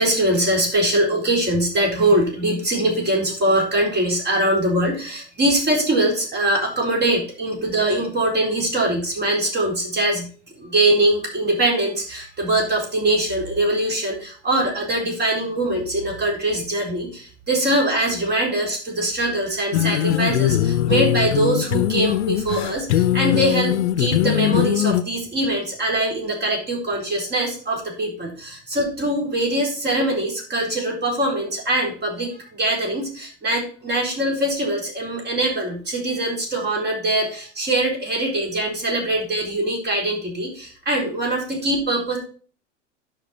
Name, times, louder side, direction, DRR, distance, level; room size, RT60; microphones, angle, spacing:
voice 1, 0.0-10.3 10.6-42.2, right 1 dB, 30° right, -1 dB, 4.2 m, -22 dB
sound 1, 19.7-25.0, left 12 dB, 70° left, 0.7 m, -21 dB
10.0 x 5.9 x 4.4 m, 0.42 s
hypercardioid pair, 95°, 36 cm